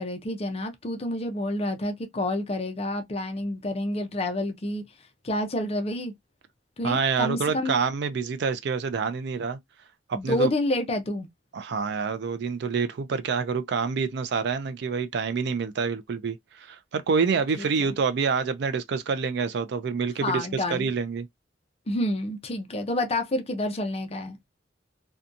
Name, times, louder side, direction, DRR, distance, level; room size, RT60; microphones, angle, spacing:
voice 1, 0.0-4.8 5.2-6.1 6.8-7.7 10.1-11.3 17.6-17.9 20.2-20.9 21.9-24.4, left 1 dB, 30° left, 0.5 m, -29 dB
voice 2, 6.8-9.6 10.1-10.5 11.5-21.3, right 5 dB, 60° right, 0.4 m, -27 dB
2.6 x 2.2 x 2.5 m
head